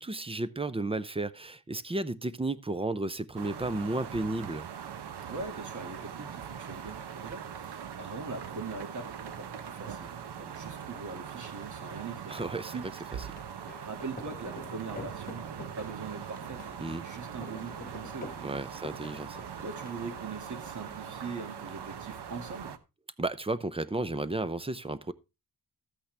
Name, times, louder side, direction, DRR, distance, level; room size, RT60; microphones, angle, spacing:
voice 1, 0.0-4.7 12.3-12.7 16.8-17.0 18.4-19.4 23.2-25.1, right 2 dB, 15° right, 0.5 m, -33 dB
sound 1, 3.4-22.8, right 8 dB, 85° right, 0.9 m, -42 dB
voice 2, 5.3-12.4 12.7-12.8 13.8-18.6 19.6-22.8, right 4 dB, 50° right, 2.1 m, -42 dB
sound 2, 13.2-19.9, left 3 dB, 20° left, 1.6 m, -47 dB
13.0 x 8.5 x 3.3 m
wide cardioid pair, 145°, 39 cm